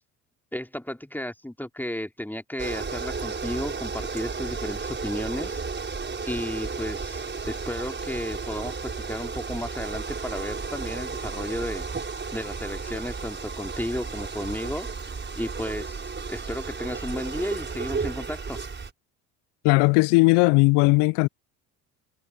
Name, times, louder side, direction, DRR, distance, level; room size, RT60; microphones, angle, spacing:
voice 1, 0.5-5.6 6.3-11.9 12.3-18.6, left 1 dB, 5° left, 3.2 m, -33 dB
sound 1, 2.6-18.9, right 4 dB, 25° right, 5.7 m, -33 dB
voice 2, 19.6-21.3, left 27 dB, 60° left, 0.9 m, -18 dB
hypercardioid pair, 65°, 46 cm